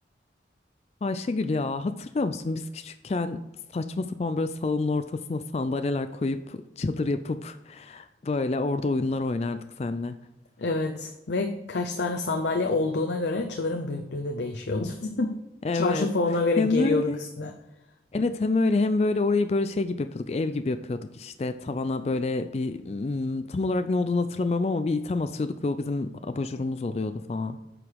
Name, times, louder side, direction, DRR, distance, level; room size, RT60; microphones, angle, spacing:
voice 1, 1.0-3.5 3.7-10.2 15.3-17.2 18.1-27.6, left 3 dB, 35° left, 10 dB, 0.3 m, -28 dB
voice 2, 10.6-15.3 15.7-17.5, left 3 dB, 80° left, 4 dB, 0.7 m, -27 dB
8.6 x 5.0 x 4.7 m, 0.98 s
head